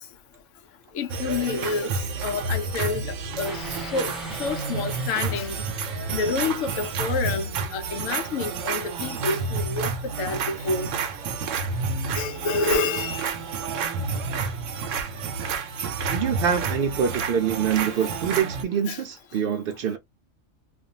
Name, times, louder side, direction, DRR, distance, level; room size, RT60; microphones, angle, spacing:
voice 1, 0.9-1.9 2.2-5.6 6.1-10.9 12.2-13.3 17.8-18.2 18.9-19.0, left 4 dB, 85° left, 1.0 m, -29 dB
sound 1, 1.1-18.6, right 4 dB, 85° right, 1.0 m, -30 dB
sound 2, 3.4-7.2, equal, ahead, 0.5 m, -41 dB
voice 2, 16.1-20.0, right 8 dB, 60° right, 0.7 m, -25 dB
2.6 x 2.3 x 2.6 m
omnidirectional pair, 1.3 m